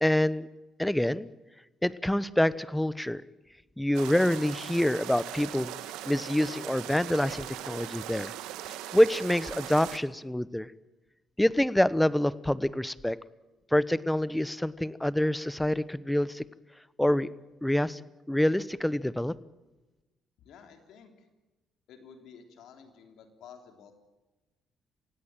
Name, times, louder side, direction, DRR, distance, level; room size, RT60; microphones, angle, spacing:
voice 1, 0.0-0.5 0.8-1.3 1.8-3.2 3.8-5.7 6.0-8.3 8.9-10.7 11.4-13.2 13.7-16.4 17.0-17.3 17.6-18.0 18.3-19.3, left 1 dB, 5° left, 17 dB, 1.0 m, -26 dB
sound 1, 3.9-10.0, right 12 dB, 80° right, 1.4 m, -40 dB
voice 2, 20.4-21.1 21.9-23.9, left 7 dB, 70° left, 5 dB, 3.4 m, -52 dB
27.0 x 16.5 x 9.1 m, 1.1 s
supercardioid pair, 60°, 0 cm